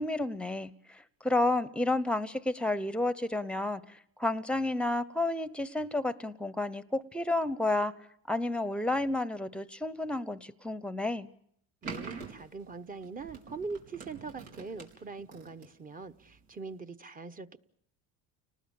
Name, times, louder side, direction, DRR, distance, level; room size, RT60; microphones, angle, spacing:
voice 1, 0.0-7.9 8.3-11.3, left 2 dB, 5° left, 0.9 m, -31 dB
voice 2, 11.8-17.6, right 4 dB, 25° right, 1.1 m, -42 dB
sound 1, 11.8-16.7, right 5 dB, 85° right, 4.6 m, -45 dB
30.0 x 19.5 x 7.1 m
supercardioid pair, 115°, 36 cm